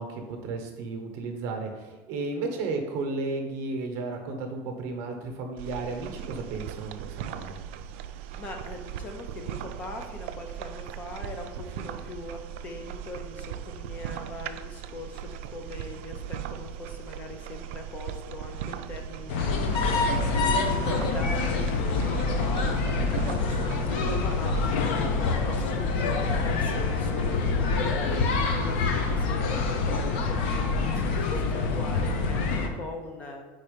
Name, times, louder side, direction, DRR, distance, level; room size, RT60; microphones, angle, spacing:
voice 1, 0.0-7.6, right 3 dB, 45° right, 3 dB, 0.9 m, -33 dB
sound 1, 5.6-24.8, right 10 dB, 80° right, 0.4 m, -39 dB
voice 2, 8.3-33.4, left 2 dB, 25° left, 4 dB, 0.5 m, -41 dB
sound 2, 19.3-32.7, left 3 dB, 75° left, 0.7 m, -26 dB
4.8 x 4.2 x 5.1 m, 1.3 s
cardioid pair, 180°, 6 cm